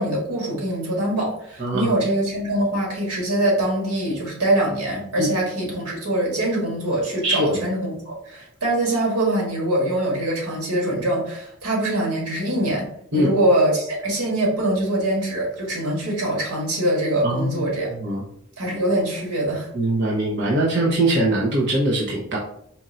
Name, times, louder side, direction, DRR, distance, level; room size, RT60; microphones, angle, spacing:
voice 1, 0.0-17.9 18.6-19.7, right 1 dB, 90° right, -2 dB, 1.8 m, -23 dB
voice 2, 1.6-1.9 5.2-5.3 7.2-7.6 13.1-13.3 17.2-17.6 18.0-18.2 19.7-22.4, right 1 dB, 50° right, -3 dB, 0.9 m, -21 dB
4.4 x 2.6 x 4.3 m, 0.68 s
head